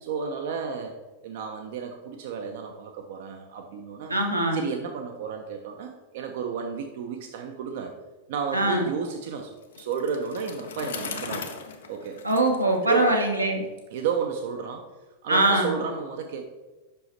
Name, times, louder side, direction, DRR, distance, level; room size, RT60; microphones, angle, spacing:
voice 1, 0.0-1.0 1.2-4.2 4.5-7.9 8.3-11.6 11.9-12.2 12.8-13.1 13.9-14.9 15.2-16.4, right 6 dB, 55° right, 4 dB, 0.5 m, -32 dB
voice 2, 4.1-4.6 8.5-8.9 12.2-13.6 15.3-15.8, right 1 dB, 85° right, 1 dB, 1.0 m, -22 dB
Bicycle, 9.6-13.4, left 6 dB, 65° left, 0.7 m, -39 dB
5.6 x 5.4 x 4.3 m, 1.1 s
figure-of-eight pair, 90°, 0 cm